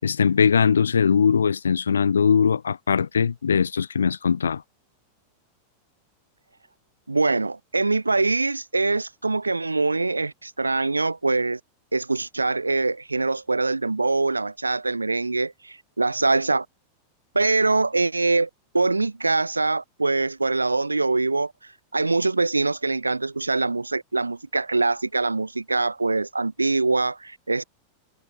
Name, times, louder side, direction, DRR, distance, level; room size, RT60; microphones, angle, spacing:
voice 1, 0.0-4.6, left 6 dB, 70° left, 4.5 m, -20 dB
voice 2, 7.1-11.6 11.9-16.7 17.3-18.5 18.7-27.6, right 3 dB, 80° right, 3.7 m, -23 dB
figure-of-eight pair, 90°, 0 cm